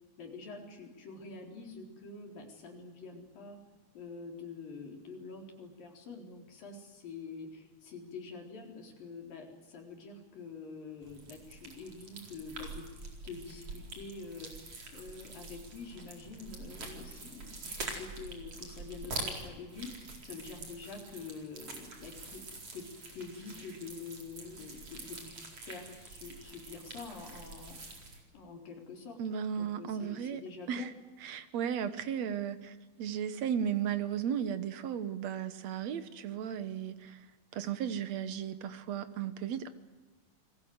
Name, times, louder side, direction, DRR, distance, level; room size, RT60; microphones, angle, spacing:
voice 1, 0.2-3.6 3.9-12.9 13.2-14.7 14.9-22.4 22.7-28.0 28.3-29.2 29.6-30.9, left 4 dB, 60° left, 5.8 m, -46 dB
sound 1, 11.0-28.2, right 3 dB, 35° right, 5.1 m, -45 dB
voice 2, 29.2-30.4 30.7-30.9 31.2-37.3 37.5-39.7, right 8 dB, 70° right, 1.6 m, -35 dB
28.5 x 21.5 x 8.0 m
omnidirectional pair, 4.7 m